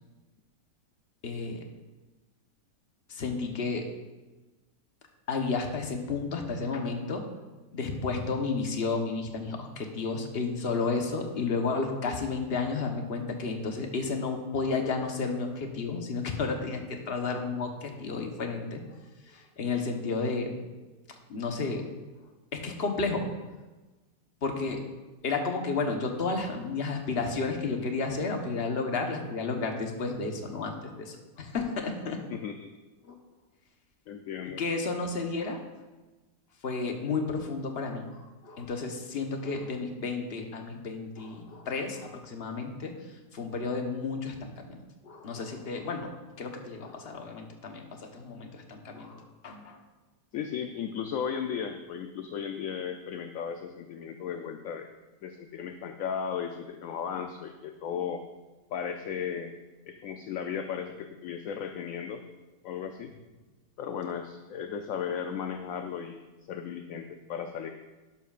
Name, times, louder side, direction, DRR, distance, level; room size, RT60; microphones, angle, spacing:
voice 1, 1.2-1.6 3.1-3.9 5.3-7.3 7.7-18.8 19.3-20.5 21.3-21.9 22.5-23.3 24.4-24.8 25.2-32.2 33.0-33.1 34.5-35.6 36.6-42.9 43.3-44.8 45.0-49.8, left 4 dB, 40° left, 3 dB, 1.2 m, -32 dB
voice 2, 32.3-32.7 34.1-34.6 50.3-54.9 55.2-58.2 58.7-59.6 59.9-62.2 62.6-63.1 63.8-66.2 66.5-67.7, left 7 dB, 65° left, 6 dB, 0.9 m, -35 dB
12.0 x 11.0 x 2.5 m, 1.2 s
omnidirectional pair, 1.8 m